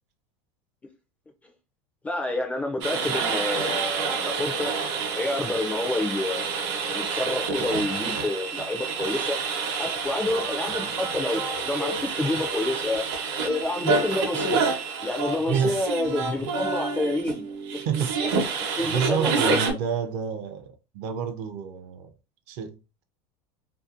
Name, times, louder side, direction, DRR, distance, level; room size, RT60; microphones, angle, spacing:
voice 1, 2.0-4.7 5.1-6.5 6.9-9.4 9.8-14.6 15.0-17.5 17.7-17.8 18.8-19.7, left 2 dB, 10° left, 0.3 m, -28 dB
sound 1, 2.8-19.7, right 4 dB, 70° right, 0.8 m, -28 dB
voice 2, 15.5-15.8 17.9-18.2 18.8-22.1 22.5-23.0, right 7 dB, 50° right, 0.5 m, -29 dB
2.6 x 2.1 x 2.4 m
supercardioid pair, 155°, 15 cm